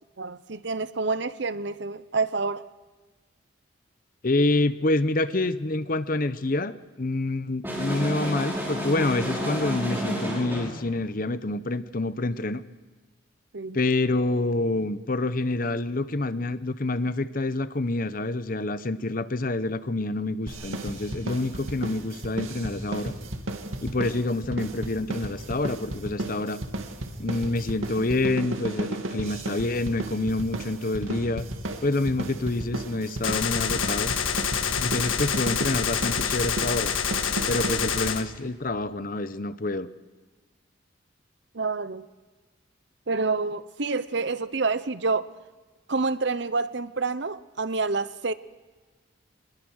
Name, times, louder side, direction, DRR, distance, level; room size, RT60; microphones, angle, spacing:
voice 1, 0.2-2.6 13.5-13.8 41.5-42.0 43.1-45.3 45.9-48.3, right 3 dB, 60° right, 0.8 m, -28 dB
voice 2, 4.2-12.6 13.7-23.1 23.8-26.6 27.2-31.4 31.8-34.1 34.8-36.9 37.5-39.9, left 2 dB, 45° left, 0.8 m, -27 dB
sound 1, 7.6-10.8, equal, 10° right, 5.7 m, -30 dB
sound 2, 20.5-38.2, right 1 dB, 85° right, 2.3 m, -34 dB
Gunshot gunfire, 33.2-38.2, left 7 dB, 85° left, 1.6 m, -27 dB
25.0 x 20.5 x 6.4 m
head